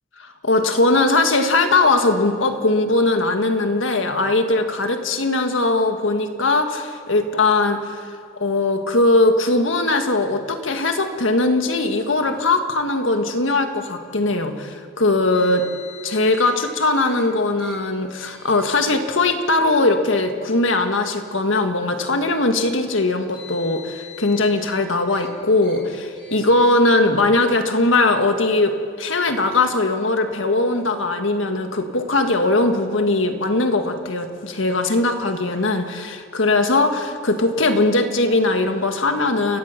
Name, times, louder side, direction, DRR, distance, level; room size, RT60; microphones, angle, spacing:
voice 1, 0.2-8.1 8.4-15.7 16.0-39.6, left 2 dB, 80° left, 6 dB, 1.7 m, -20 dB
Car, 15.3-16.6 17.0-17.2 17.6-17.8 18.1-18.7 19.5-19.7 20.7-20.8 23.0-24.7 25.1-25.3 25.6-25.8 26.2-26.7, left 6 dB, 20° left, 5.1 m, -42 dB
29.5 x 15.0 x 5.9 m, 2.2 s
head